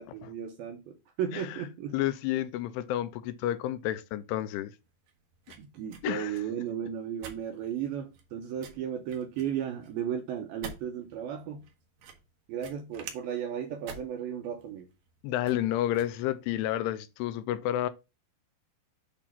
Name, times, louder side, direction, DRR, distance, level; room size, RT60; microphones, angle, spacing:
voice 1, 0.0-2.0 5.6-11.6 12.5-14.9, right 9 dB, 85° right, 2.2 m, -35 dB
voice 2, 1.9-4.8 6.0-6.4 15.2-17.9, left 13 dB, 85° left, 2.5 m, -30 dB
sound 1, 4.7-16.8, right 6 dB, 65° right, 2.6 m, -49 dB
8.5 x 2.9 x 5.8 m
omnidirectional pair, 5.0 m